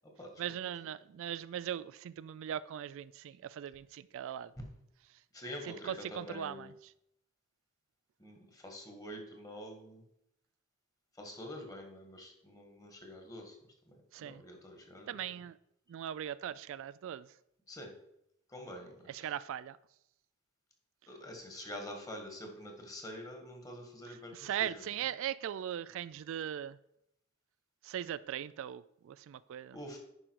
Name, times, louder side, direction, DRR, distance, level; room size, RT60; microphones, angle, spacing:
voice 1, 0.4-4.5 5.6-6.9 14.1-14.4 15.1-15.6 15.9-17.3 19.1-19.8 24.0-26.8 27.8-29.8, right 10 dB, 65° right, 17 dB, 0.3 m, -39 dB
voice 2, 5.3-6.7 8.2-10.0 11.2-13.6 13.9-15.2 17.7-17.9 18.5-19.3 21.1-24.8 29.7-30.0, left 1 dB, 15° left, 3 dB, 1.6 m, -46 dB
10.0 x 5.1 x 4.6 m, 0.78 s
head